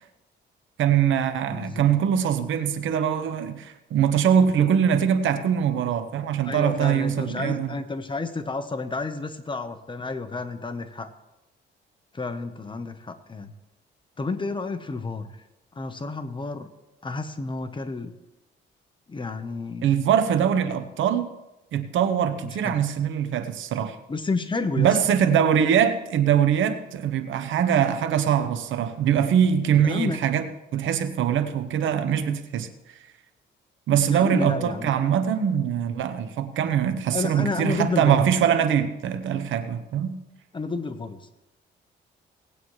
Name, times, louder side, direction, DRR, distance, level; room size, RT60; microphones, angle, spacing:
voice 1, 0.8-7.7 19.8-21.3 21.7-24.0 24.8-32.7 33.9-40.2, right 8 dB, 75° right, 10 dB, 1.0 m, -22 dB
voice 2, 1.5-1.9 6.4-11.1 12.1-13.5 14.2-15.3 15.7-16.7 17.0-18.1 19.1-19.9 22.4-22.7 24.1-25.0 29.8-30.2 34.1-34.9 37.1-38.2 40.5-41.3, left 3 dB, 25° left, 8 dB, 1.1 m, -30 dB
18.5 x 8.8 x 3.2 m, 0.96 s
cardioid pair, 90°, 20 cm